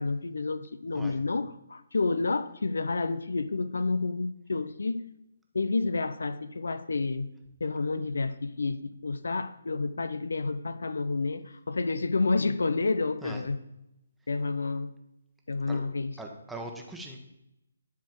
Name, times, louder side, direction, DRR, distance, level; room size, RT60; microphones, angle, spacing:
voice 1, 0.0-5.0 5.5-7.3 7.6-13.6 14.3-14.9 15.5-16.1, left 3 dB, 80° left, 14 dB, 0.7 m, -29 dB
voice 2, 16.2-17.2, right 2 dB, 5° right, 1 dB, 1.2 m, -40 dB
11.5 x 4.3 x 7.3 m, 0.85 s
hypercardioid pair, 155°, 0 cm